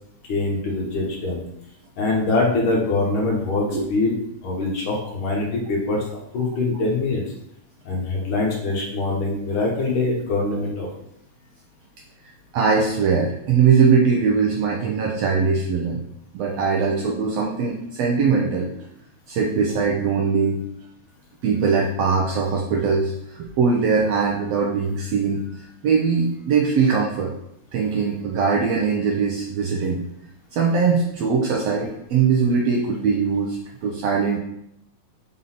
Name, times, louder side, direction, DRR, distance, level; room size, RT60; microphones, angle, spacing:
voice 1, 0.3-1.4 2.0-4.2 4.4-6.0 6.3-7.2 7.8-10.9, left 2 dB, 60° left, -2 dB, 1.5 m, -23 dB
voice 2, 12.5-16.0 16.3-18.7 19.3-20.6 21.4-27.3 27.7-30.0 30.5-34.4, right 5 dB, 80° right, 0 dB, 1.5 m, -21 dB
5.3 x 3.9 x 5.7 m, 0.78 s
omnidirectional pair, 3.6 m